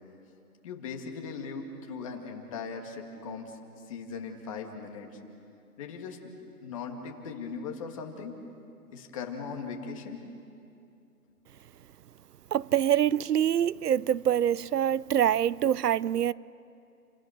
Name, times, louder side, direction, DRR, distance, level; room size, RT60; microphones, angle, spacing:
voice 1, 0.6-5.2 5.8-6.2 6.6-8.4 8.9-10.2, left 5 dB, 20° left, 2.1 m, -39 dB
voice 2, 12.5-16.3, right 10 dB, 90° right, 0.7 m, -25 dB
29.5 x 26.5 x 6.6 m
hypercardioid pair, 170°, 46 cm